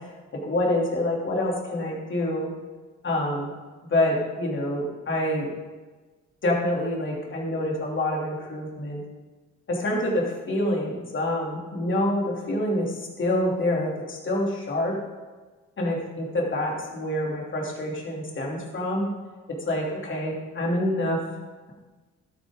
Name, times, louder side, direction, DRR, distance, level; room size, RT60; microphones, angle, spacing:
voice 1, 0.4-2.5 3.0-3.5 3.9-5.5 6.4-9.0 9.7-15.0 15.8-19.1 19.6-21.2, left 1 dB, 40° left, -2 dB, 3.0 m, -26 dB
12.0 x 10.5 x 3.9 m, 1.3 s
cardioid pair, 90°, 30 cm